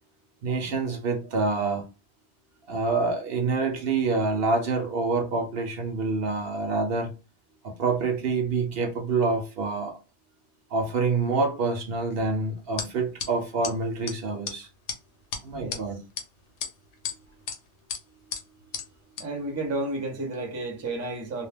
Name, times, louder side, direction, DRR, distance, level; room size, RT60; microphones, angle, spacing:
voice 1, 0.4-1.9 2.7-7.1 7.6-10.0 10.7-14.7 15.4-16.0, right 3 dB, 65° right, 0.7 m, -27 dB
sound 1, 12.8-12.9 13.2-13.3 13.6-13.7 14.1-14.2 14.4-14.6 14.9-15.0 15.3-15.8 16.2-16.3 16.6-17.2 17.5-17.6 17.9-18.0 18.3-18.4 18.7-18.8 19.2-19.3, left 6 dB, 80° left, 1.0 m, -32 dB
voice 2, 15.5-15.8 19.2-21.5, right 2 dB, 20° right, 0.5 m, -32 dB
2.2 x 2.0 x 3.3 m
omnidirectional pair, 1.2 m